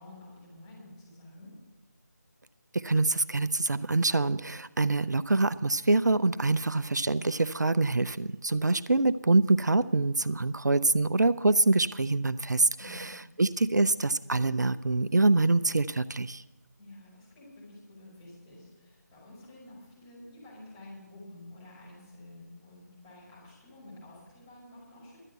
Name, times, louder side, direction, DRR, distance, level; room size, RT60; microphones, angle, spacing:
voice 1, 0.0-1.5 12.8-13.1 16.7-25.2, left 1 dB, 15° left, -6 dB, 5.5 m, -50 dB
voice 2, 2.7-16.4, right 2 dB, 70° right, 15 dB, 0.5 m, -25 dB
12.0 x 9.1 x 7.9 m, 1.1 s
figure-of-eight pair, 160°, 10 cm